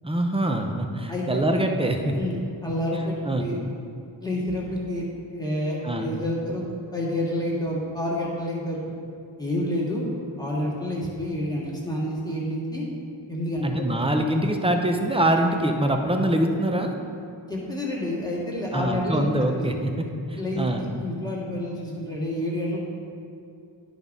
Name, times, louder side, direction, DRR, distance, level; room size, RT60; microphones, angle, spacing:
voice 1, 0.0-2.1 3.2-3.5 5.8-6.1 13.6-16.9 18.7-19.9 20.3-20.9, right 1 dB, 10° right, 3 dB, 0.7 m, -24 dB
voice 2, 1.1-1.4 2.1-2.3 2.6-3.6 4.2-6.7 6.9-8.9 9.4-10.0 10.4-12.9 13.3-13.9 17.5-19.7 20.3-22.8, left 1 dB, 10° left, -6 dB, 1.9 m, -29 dB
10.0 x 5.4 x 3.6 m, 2.4 s
wide cardioid pair, 55°, 48 cm